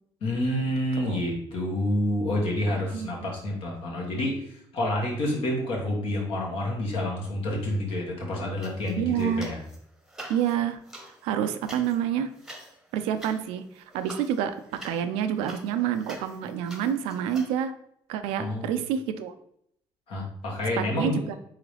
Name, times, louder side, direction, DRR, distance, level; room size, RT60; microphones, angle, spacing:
voice 1, 0.2-9.6 18.4-18.7 20.1-21.2, left 1 dB, 70° left, -2 dB, 1.6 m, -28 dB
voice 2, 2.9-3.3 9.0-9.5 10.3-10.8 11.2-12.3 12.9-17.7 18.1-19.3 20.8-21.3, right 9 dB, 90° right, 10 dB, 0.4 m, -28 dB
sound 1, 8.6-9.8 10.1-17.5, right 1 dB, 5° right, 0.9 m, -46 dB
3.9 x 3.8 x 3.3 m, 0.71 s
supercardioid pair, 80°, 10 cm